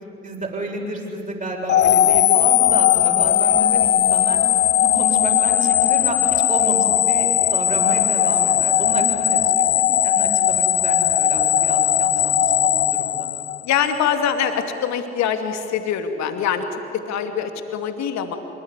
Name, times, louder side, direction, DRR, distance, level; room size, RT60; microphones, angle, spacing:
voice 1, 0.2-4.4 4.8-13.3, right 1 dB, 25° right, 0 dB, 7.4 m, -30 dB
sound 1, 1.7-13.9, left 11 dB, 35° left, 0.6 m, -18 dB
voice 2, 13.6-18.4, left 8 dB, 55° left, 7 dB, 2.6 m, -24 dB
25.5 x 23.5 x 9.9 m, 2.8 s
figure-of-eight pair, 50°, 33 cm